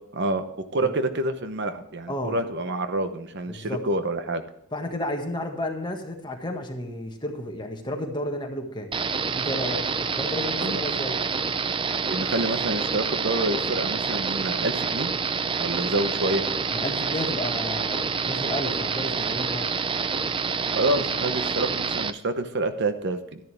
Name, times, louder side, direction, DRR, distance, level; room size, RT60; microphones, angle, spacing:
voice 1, 0.1-4.4 10.6-10.8 12.0-15.1 15.6-16.4 20.7-23.4, right 2 dB, 55° right, 9 dB, 0.9 m, -27 dB
voice 2, 2.1-2.4 3.5-3.8 4.7-8.9 9.3-11.2 16.7-19.7, left 1 dB, 20° left, 2 dB, 1.7 m, -32 dB
sound 1, 8.9-22.1, right 5 dB, 25° right, 0.5 m, -27 dB
12.5 x 10.5 x 3.4 m, 0.80 s
head